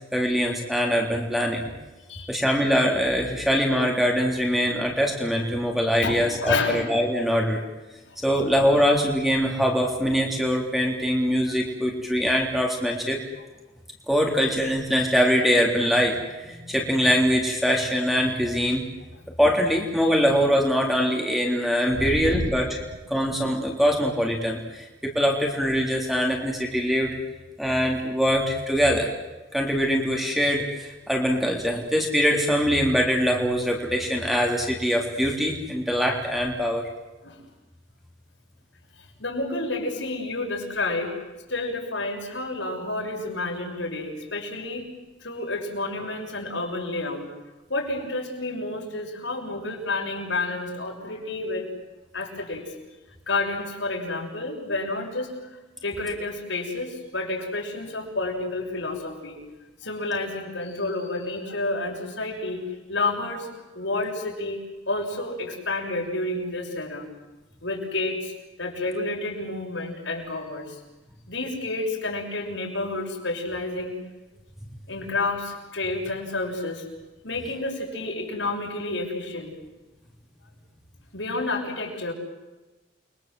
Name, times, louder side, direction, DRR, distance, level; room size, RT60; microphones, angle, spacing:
voice 1, 0.1-1.7 2.3-7.6 8.2-13.2 14.1-18.9 19.4-22.8 23.1-27.1 27.6-29.1 29.5-36.8, equal, ahead, 0 dB, 3.4 m, -23 dB
voice 2, 2.0-2.3 6.0-6.9 8.1-8.2 11.4-11.6 21.9-22.5 37.2-37.4 39.2-41.1 41.5-44.8 45.2-47.3 47.7-51.7 52.1-52.7 53.3-55.3 55.8-59.4 59.8-63.5 63.7-67.1 67.6-68.3 68.6-70.8 71.3-73.9 74.9-76.8 77.2-79.5 81.1-82.1, left 2 dB, 70° left, 1 dB, 6.7 m, -30 dB
29.5 x 23.5 x 7.8 m, 1.1 s
head